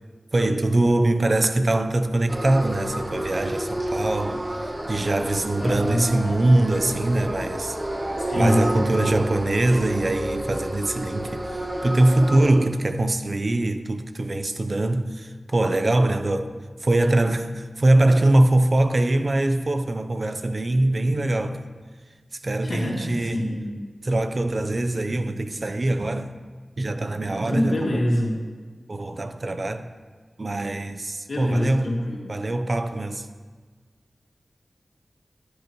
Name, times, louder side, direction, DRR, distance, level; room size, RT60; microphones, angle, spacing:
voice 1, 0.3-7.8 8.3-16.5 16.8-21.6 22.3-23.5 24.0-26.3 26.8-27.9 28.9-29.9 30.4-32.0 32.3-33.3, right 2 dB, 50° right, 0.6 m, -23 dB
sound 1, 2.3-12.5, right 1 dB, 35° right, 1.2 m, -30 dB
voice 2, 5.6-6.2 8.2-9.0 22.6-23.8 27.4-28.4 31.3-32.4, left 1 dB, 80° left, 2.2 m, -25 dB
16.0 x 9.6 x 3.0 m
wide cardioid pair, 65°, 0 cm